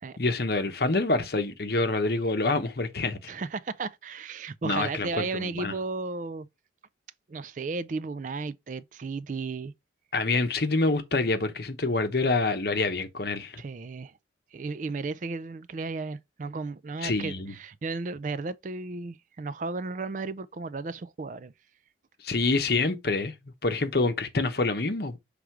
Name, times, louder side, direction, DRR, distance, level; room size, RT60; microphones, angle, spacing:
voice 1, 0.2-3.3 4.6-5.7 10.1-13.6 17.0-17.5 22.2-23.3 23.6-25.2, left 3 dB, 55° left, 0.9 m, -26 dB
voice 2, 3.3-6.5 7.3-9.7 13.6-14.1 14.5-21.5, right 3 dB, 40° right, 0.4 m, -34 dB
6.2 x 3.4 x 4.6 m
head